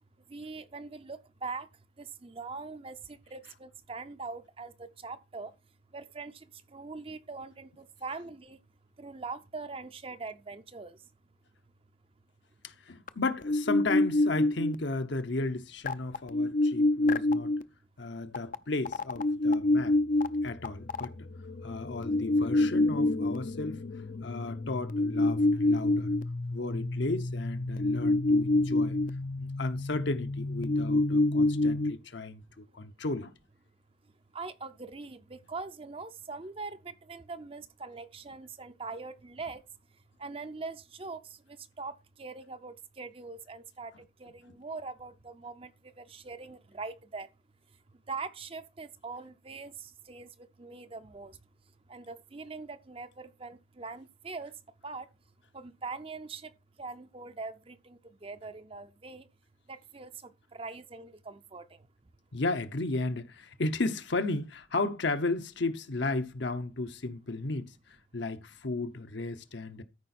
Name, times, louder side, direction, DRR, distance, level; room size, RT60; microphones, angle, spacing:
voice 1, 0.3-1.7 2.0-5.5 5.9-8.6 9.0-11.0 17.3-17.4 34.3-39.7 40.2-47.3 48.1-51.4 51.9-54.6 54.8-55.1 55.5-56.5 56.8-59.3 59.7-61.8, right 4 dB, 30° right, 0.6 m, -42 dB
voice 2, 12.6-17.5 18.0-20.0 20.4-21.3 21.6-23.8 24.2-26.1 26.5-29.0 29.4-33.4 62.3-67.7 68.1-69.8, left 2 dB, 65° left, 0.9 m, -34 dB
sound 1, 13.1-13.2 13.4-14.7 15.9-17.6 18.3-18.6 18.9-31.9, left 2 dB, 40° left, 0.5 m, -27 dB
13.5 x 5.0 x 4.3 m
head